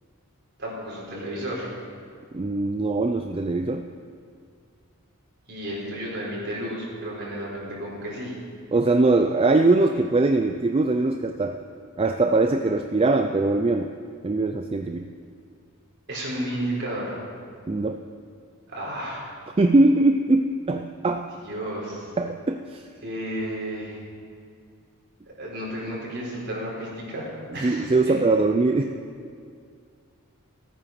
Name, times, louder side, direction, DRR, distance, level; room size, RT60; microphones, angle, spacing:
voice 1, 0.6-1.7 5.5-8.3 16.1-17.1 18.7-19.3 21.3-22.1 23.0-24.0 25.4-28.1, right 1 dB, 50° right, -5 dB, 4.2 m, -32 dB
voice 2, 2.3-3.9 8.7-11.6 12.0-13.9 14.2-15.1 17.7-18.0 19.6-21.3 22.2-22.8 27.6-28.9, right 2 dB, 25° right, 6 dB, 0.4 m, -21 dB
15.5 x 9.1 x 5.9 m, 2.2 s
head